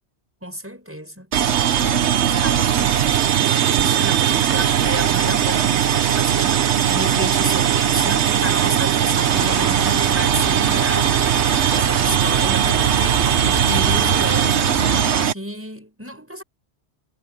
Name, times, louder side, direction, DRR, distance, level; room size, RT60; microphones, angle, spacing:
voice 1, 0.4-11.1 11.7-14.6 15.2-16.4, equal, 10° right, 7.3 m, -32 dB
sound 1, 1.3-15.3, right 9 dB, 70° right, 1.1 m, -19 dB
sound 2, 9.3-15.3, right 1 dB, 45° right, 4.4 m, -28 dB
omnidirectional pair, 1.2 m